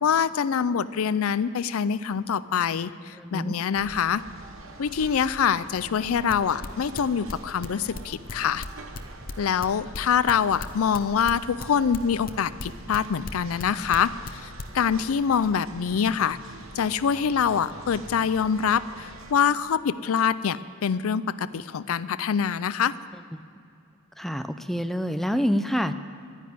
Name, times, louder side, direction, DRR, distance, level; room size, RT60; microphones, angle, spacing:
voice 1, 0.0-4.2 4.8-8.6 9.4-16.4 16.8-23.0, left 7 dB, 80° left, 16 dB, 0.4 m, -25 dB
voice 2, 3.1-3.6 23.1-23.4 24.2-25.9, equal, ahead, 9 dB, 0.4 m, -27 dB
sound 1, 3.7-19.3, right 2 dB, 65° right, 1.1 m, -45 dB
sound 2, 6.3-9.7 9.9-13.6 13.9-14.3 14.6-14.9, left 3 dB, 45° left, 0.7 m, -36 dB
11.5 x 10.0 x 9.3 m, 2.4 s
head